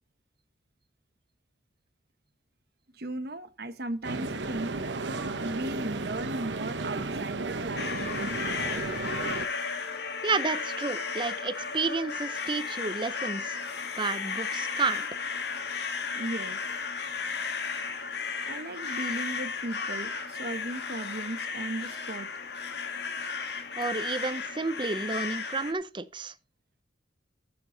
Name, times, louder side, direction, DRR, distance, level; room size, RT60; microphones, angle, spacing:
voice 1, 2.9-4.9 5.4-8.9 16.1-16.6 18.5-22.3, right 2 dB, 60° right, 1.2 m, -37 dB
sound 1, 4.0-9.5, right 3 dB, 80° right, 1.1 m, -33 dB
sound 2, 7.8-25.7, left 5 dB, 65° left, 1.8 m, -34 dB
voice 2, 10.2-13.6 14.0-15.1 23.8-26.3, right 4 dB, 25° right, 0.7 m, -31 dB
15.0 x 6.9 x 3.9 m
head